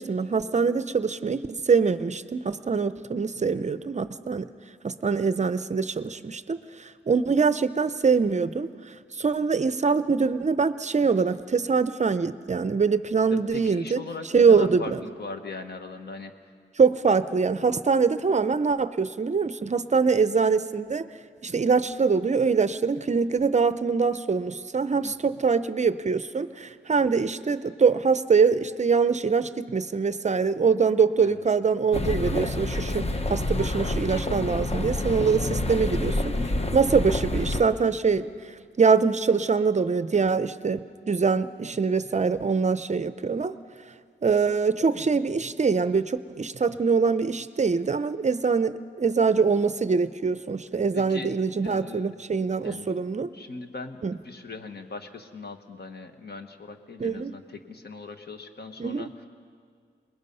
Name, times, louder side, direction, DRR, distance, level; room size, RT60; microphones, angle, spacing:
voice 1, 0.0-4.5 4.8-8.7 9.2-14.0 14.3-15.0 16.8-21.1 21.4-36.3 36.7-38.3 38.8-43.5 44.2-53.3 54.0-54.2 57.0-57.3 58.8-59.1, right 5 dB, 35° right, 13 dB, 0.6 m, -24 dB
voice 2, 3.3-3.7 13.3-16.3 25.0-25.3 31.2-31.4 50.9-51.3 51.6-52.1 52.6-52.9 53.3-59.2, left 3 dB, 55° left, 6 dB, 1.5 m, -39 dB
sound 1, 31.9-37.6, left 2 dB, 30° left, 1.0 m, -28 dB
28.0 x 20.5 x 5.5 m, 2.1 s
wide cardioid pair, 110°, 20 cm